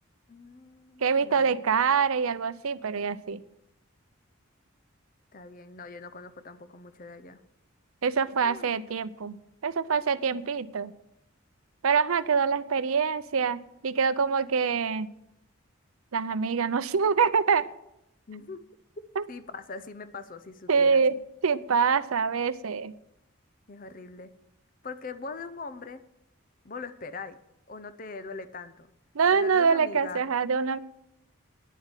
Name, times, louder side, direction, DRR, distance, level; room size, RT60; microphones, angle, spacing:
voice 1, 0.3-1.6 5.3-7.4 8.4-8.9 18.3-18.6 19.3-21.0 23.7-24.3 24.8-26.0 26.6-27.4 27.7-28.9 29.3-30.2, left 4 dB, 40° left, 12 dB, 0.7 m, -41 dB
voice 2, 1.0-3.4 8.0-10.9 11.8-15.1 16.1-17.7 19.2-19.3 20.7-22.9 29.1-30.8, right 5 dB, 90° right, 15 dB, 0.6 m, -25 dB
10.0 x 7.4 x 9.0 m, 0.83 s
head